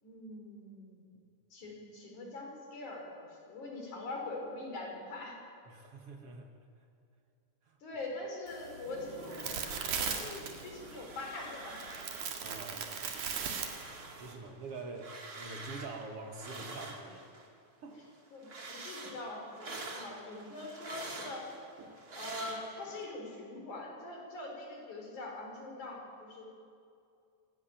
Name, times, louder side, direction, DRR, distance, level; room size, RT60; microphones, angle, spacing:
voice 1, 0.0-1.1 1.5-5.4 7.8-9.5 10.0-11.8 18.3-21.4 22.2-26.4, left 2 dB, 70° left, 0 dB, 5.9 m, -43 dB
voice 2, 5.7-6.5 7.7-7.8 12.4-13.5 14.2-17.3 17.8-18.0, right 3 dB, 55° right, 4 dB, 2.4 m, -46 dB
sound 1, 8.5-14.3, right 6 dB, 80° right, 3.5 m, -39 dB
sound 2, 8.8-14.1, equal, 5° left, 3.3 m, -55 dB
sound 3, 9.0-10.4 10.6-12.4 12.8-17.5 17.9-23.0, right 3 dB, 30° right, 2.5 m, -47 dB
25.5 x 17.0 x 9.1 m, 2.5 s
omnidirectional pair, 3.5 m